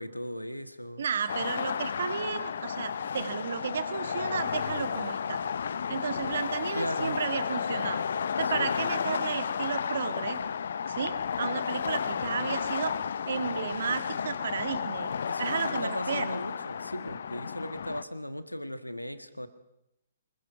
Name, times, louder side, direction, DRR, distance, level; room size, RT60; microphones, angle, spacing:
voice 1, 0.0-1.0 6.7-7.2 8.4-8.7 15.3-19.5, equal, 90° left, 11 dB, 1.6 m, -37 dB
voice 2, 1.0-5.4 5.9-8.0 8.4-10.4 10.9-15.1 15.4-16.4, right 6 dB, 55° right, 10 dB, 1.9 m, -33 dB
sound 1, 1.3-18.0, left 7 dB, 60° left, 0.8 m, -32 dB
25.5 x 21.5 x 5.9 m, 0.84 s
figure-of-eight pair, 125°, 0 cm